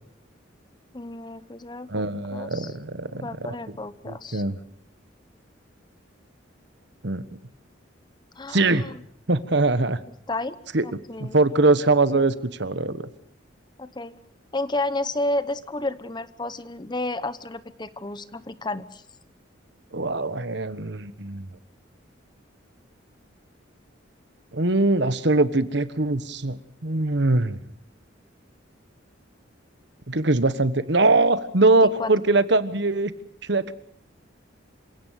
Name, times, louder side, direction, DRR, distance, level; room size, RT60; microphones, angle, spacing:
voice 1, 0.9-2.7 3.1-4.4 8.3-9.0 10.3-11.4 13.8-14.2 14.5-19.0 31.6-32.3, left 2 dB, 20° left, 14 dB, 0.9 m, -32 dB
voice 2, 1.9-3.3 4.1-4.6 7.0-7.2 8.5-8.9 9.3-10.0 10.7-10.8 11.2-13.0 19.9-21.5 24.5-27.6 30.1-33.1 33.5-33.7, right 2 dB, 60° right, 13 dB, 1.3 m, -22 dB
27.5 x 17.0 x 6.6 m, 0.66 s
head